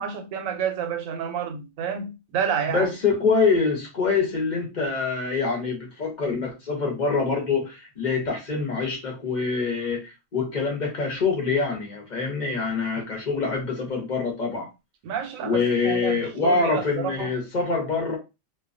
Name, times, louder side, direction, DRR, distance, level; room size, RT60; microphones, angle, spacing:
voice 1, 0.0-2.9 15.0-17.3, right 7 dB, 80° right, 1.0 m, -29 dB
voice 2, 2.7-14.7 15.4-18.2, left 4 dB, 40° left, 0.7 m, -25 dB
2.3 x 2.2 x 2.4 m
omnidirectional pair, 1.4 m